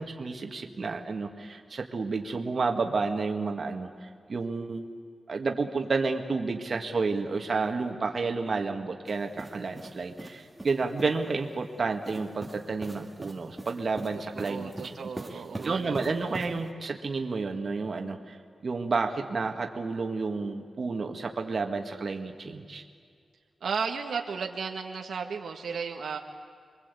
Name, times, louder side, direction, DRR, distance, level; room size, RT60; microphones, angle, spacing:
voice 1, 0.0-4.8 5.3-14.7 15.3-18.4 18.6-22.8, right 4 dB, 45° right, 3 dB, 2.0 m, -31 dB
sound 1, 9.1-11.2 12.0-16.7, right 1 dB, 15° right, 2.0 m, -43 dB
voice 2, 14.3-16.0 16.2-16.4 23.6-26.2, right 5 dB, 80° right, 3 dB, 1.6 m, -34 dB
29.0 x 23.0 x 8.5 m, 2.1 s
wide cardioid pair, 140°, 0 cm